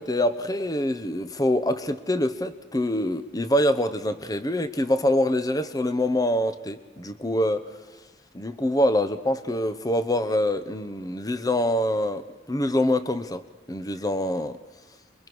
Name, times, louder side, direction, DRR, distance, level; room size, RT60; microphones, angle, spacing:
voice 1, 0.0-7.8 8.3-14.6, left 1 dB, 20° left, 11 dB, 0.9 m, -25 dB
27.5 x 23.0 x 4.7 m, 1.3 s
head